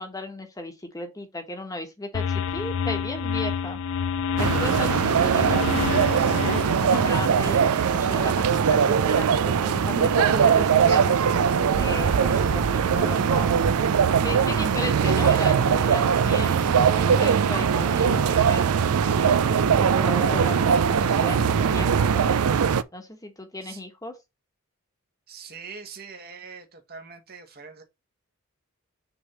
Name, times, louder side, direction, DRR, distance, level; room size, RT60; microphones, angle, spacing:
voice 1, 0.0-3.8 4.4-5.6 5.9-11.2 11.8-13.6 14.2-18.9 19.2-21.4 21.7-22.3 22.9-24.1, left 1 dB, 15° left, 1.2 m, -35 dB
sound 1, 2.1-7.3, left 6 dB, 60° left, 0.4 m, -28 dB
sound 2, 4.4-22.8, right 7 dB, 75° right, 0.4 m, -21 dB
sound 3, 7.7-22.2, left 1 dB, 35° left, 1.0 m, -42 dB
voice 2, 25.3-27.8, right 5 dB, 45° right, 1.4 m, -42 dB
6.0 x 3.4 x 5.5 m
head